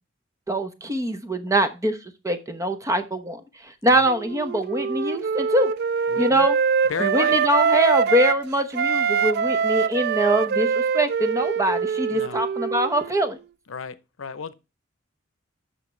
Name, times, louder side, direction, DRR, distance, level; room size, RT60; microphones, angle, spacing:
voice 1, 0.5-5.7 6.2-6.6 7.0-13.4, right 1 dB, 15° right, 0.9 m, -23 dB
Wind instrument woodwind instrument, 4.0-8.4 8.7-13.3, right 6 dB, 55° right, 0.3 m, -24 dB
voice 2, 6.1-6.5 6.9-7.4 12.1-12.4 13.7-14.5, left 5 dB, 80° left, 0.7 m, -32 dB
11.0 x 5.8 x 3.2 m
head